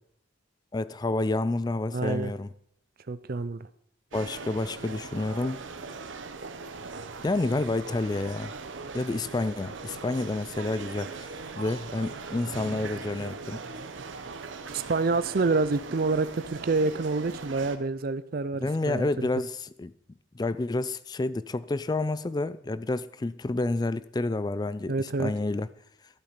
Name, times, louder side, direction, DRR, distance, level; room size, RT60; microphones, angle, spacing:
voice 1, 0.7-2.5 4.1-5.6 7.2-8.5 8.9-13.6 18.6-19.9 20.3-25.7, left 2 dB, 20° left, 0.4 m, -29 dB
voice 2, 1.9-2.3 3.1-3.7 14.7-19.1 24.9-25.3, right 3 dB, 50° right, 0.5 m, -27 dB
sound 1, 4.1-17.8, right 4 dB, 75° right, 0.9 m, -40 dB
12.5 x 8.5 x 5.7 m
head